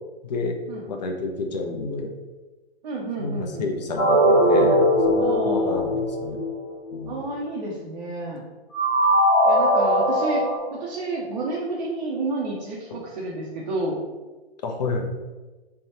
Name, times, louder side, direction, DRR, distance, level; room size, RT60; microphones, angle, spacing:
voice 1, 0.2-0.5 0.9-2.1 3.2-6.4 6.9-7.2 12.9-13.0 14.6-15.0, left 3 dB, 40° left, 4 dB, 0.5 m, -29 dB
voice 2, 2.8-3.7 5.2-5.8 7.1-8.4 9.5-10.4 10.7-14.0, right 2 dB, 40° right, -4 dB, 0.5 m, -30 dB
sound 1, 4.0-6.9 8.7-10.6, equal, 20° left, 0.8 m, -20 dB
3.3 x 2.2 x 2.8 m, 1.2 s
figure-of-eight pair, 120°, 32 cm